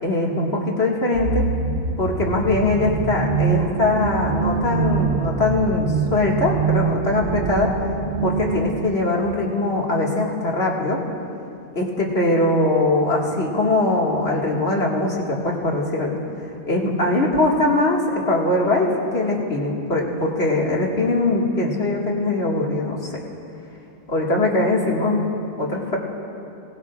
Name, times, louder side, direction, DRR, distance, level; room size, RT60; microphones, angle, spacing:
voice 1, 0.0-1.5 2.0-7.7 8.2-11.0 11.7-16.1 16.7-23.1 24.1-25.2 25.6-26.0, left 2 dB, 65° left, -2 dB, 2.2 m, -21 dB
sound 1, 1.1-8.8, right 5 dB, 75° right, 1.1 m, -24 dB
26.0 x 19.0 x 2.5 m, 2.8 s
omnidirectional pair, 1.2 m